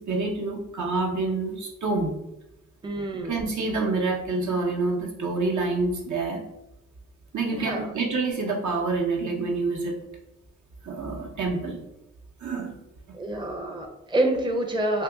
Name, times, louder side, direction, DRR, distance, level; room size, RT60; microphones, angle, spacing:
voice 1, 0.0-2.1 3.3-6.4 7.3-10.0 10.8-11.8 12.4-12.8, right 3 dB, 70° right, 0 dB, 0.8 m, -27 dB
voice 2, 2.8-3.3 7.5-7.9 13.1-15.0, right 1 dB, 15° right, 2 dB, 0.5 m, -27 dB
2.9 x 2.8 x 3.5 m, 0.88 s
cardioid pair, 80°, 31 cm